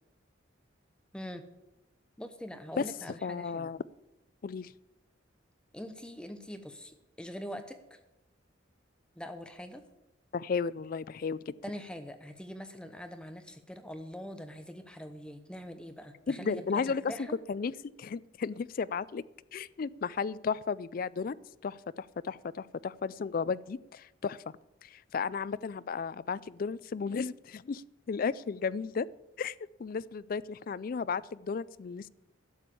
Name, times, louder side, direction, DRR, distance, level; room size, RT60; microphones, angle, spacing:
voice 1, 2.2-3.7 5.7-8.0 9.2-9.8 11.6-17.4, equal, 5° left, 8 dB, 0.8 m, -43 dB
voice 2, 3.2-3.8 4.4-4.7 10.3-11.5 16.3-17.0 17.5-17.7 18.0-19.2 19.5-21.4 21.6-24.4 24.8-27.8 28.1-29.1 29.4-29.5 29.8-32.1, left 5 dB, 45° left, 18 dB, 0.3 m, -34 dB
12.0 x 7.1 x 8.4 m, 0.94 s
head